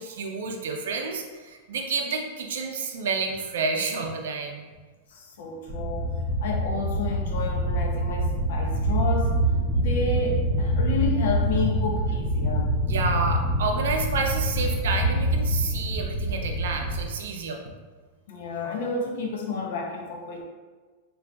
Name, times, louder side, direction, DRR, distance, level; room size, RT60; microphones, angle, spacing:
voice 1, 0.0-4.7 12.9-17.6, right 4 dB, 90° right, 3 dB, 0.4 m, -29 dB
voice 2, 5.1-6.1 6.4-9.4 9.7-12.7 18.3-20.4, left 3 dB, 70° left, 1 dB, 0.5 m, -31 dB
sound 1, 5.7-17.1, equal, 25° right, 0.6 m, -25 dB
3.6 x 2.3 x 2.3 m, 1.4 s
supercardioid pair, 165°, 0 cm